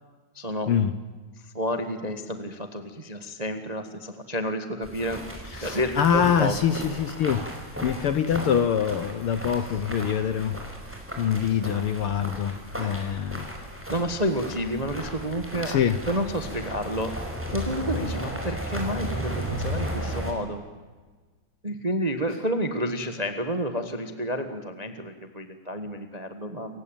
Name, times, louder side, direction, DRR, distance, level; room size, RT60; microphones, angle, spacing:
voice 1, 0.3-0.7 1.5-5.2 5.6-6.6 13.9-15.8 16.1-17.1 17.5-20.6 21.6-26.8, equal, 25° right, 8 dB, 0.9 m, -30 dB
sound 1, 4.8-20.3, equal, 5° right, 4.9 m, -35 dB
voice 2, 5.5-10.6 11.2-13.5 15.6-16.0, left 8 dB, 65° left, 12 dB, 1.5 m, -25 dB
28.5 x 16.0 x 9.1 m, 1.4 s
omnidirectional pair, 3.3 m